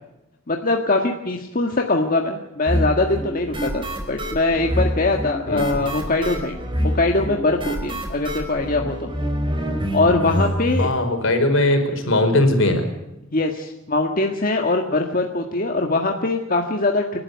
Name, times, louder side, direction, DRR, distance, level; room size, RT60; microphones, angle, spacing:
voice 1, 0.5-6.6 6.9-9.1 9.9-10.9 13.3-17.2, left 2 dB, 45° left, 2 dB, 1.7 m, -22 dB
sound 1, 2.7-10.9, equal, 25° right, 4.6 m, -26 dB
voice 2, 5.5-5.8 10.8-12.8, left 1 dB, 70° left, 6 dB, 4.9 m, -19 dB
29.0 x 13.0 x 8.2 m, 0.95 s
head